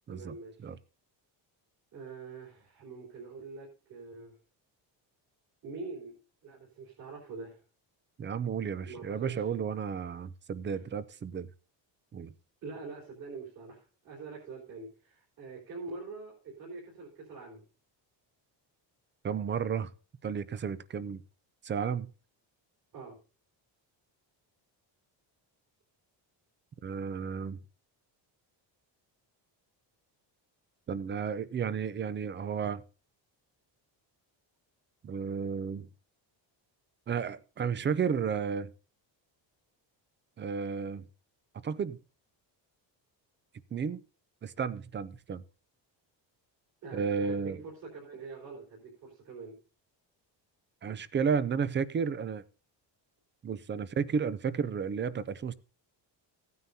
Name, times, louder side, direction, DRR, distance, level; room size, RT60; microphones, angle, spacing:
voice 1, 0.1-0.7 1.9-4.3 5.6-6.2 6.4-7.6 8.9-9.5 10.7-10.8 12.6-17.6 22.9-23.2 46.8-47.5 47.9-49.6, right 4 dB, 45° right, 4.0 m, -44 dB
voice 2, 8.2-11.5 12.1-12.3 19.2-19.9 20.2-21.2 21.6-22.1 26.8-27.6 30.9-32.8 35.0-35.9 37.1-38.7 40.4-41.1 41.6-42.0 43.7-44.0 44.4-45.4 46.9-47.6 50.8-52.4 53.4-55.5, right 6 dB, 25° right, 0.4 m, -32 dB
16.5 x 9.4 x 2.7 m
cardioid pair, 175°, 45 cm